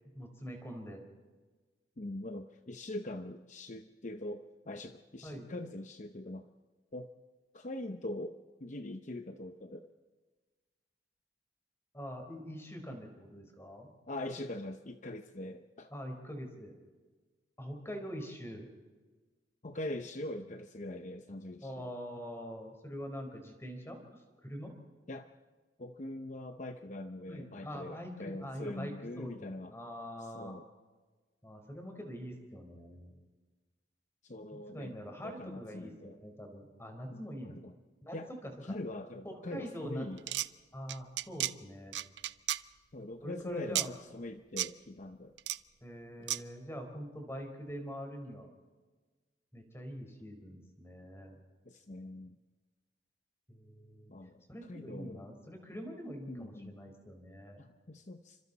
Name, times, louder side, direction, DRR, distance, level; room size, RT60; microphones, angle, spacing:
voice 1, 0.1-1.0 5.2-5.5 11.9-13.9 15.9-16.7 17.6-18.7 21.6-24.7 27.3-30.6 31.4-33.2 34.7-37.6 38.0-38.2 38.4-38.8 39.2-40.1 40.7-42.0 43.2-43.9 45.8-48.5 49.5-51.4 53.5-54.1 54.5-57.6, equal, 15° left, 3 dB, 4.4 m, -44 dB
voice 2, 2.0-6.5 6.9-7.1 7.5-9.9 14.1-15.9 19.6-21.9 25.1-25.3 25.8-29.7 30.2-30.7 34.2-34.9 35.2-36.2 37.1-37.7 38.1-38.3 38.6-40.2 42.9-45.3 46.2-46.3 51.6-52.4 54.1-54.4 54.7-55.2 56.3-56.8 57.6-58.4, left 1 dB, 45° left, 7 dB, 0.9 m, -42 dB
sound 1, 40.2-40.5 40.9-41.5 41.9-42.6 43.8-43.9 44.6-44.7 45.4-45.6 46.3-46.4, right 13 dB, 70° right, 0.6 m, -33 dB
29.5 x 25.5 x 4.2 m, 1.3 s
head